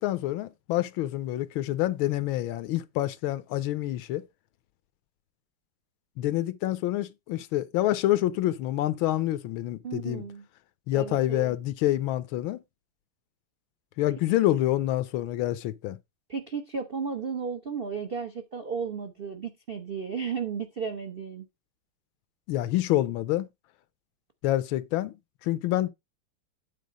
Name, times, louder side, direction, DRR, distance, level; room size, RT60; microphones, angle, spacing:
voice 1, 0.0-4.2 6.2-10.2 10.9-12.6 14.0-16.0 22.5-23.5 24.4-25.1 25.4-25.9, left 14 dB, 75° left, 1.3 m, -27 dB
voice 2, 9.8-10.4 10.9-11.6 16.3-21.4, right 6 dB, 60° right, 0.6 m, -34 dB
8.5 x 4.2 x 5.0 m
omnidirectional pair, 2.4 m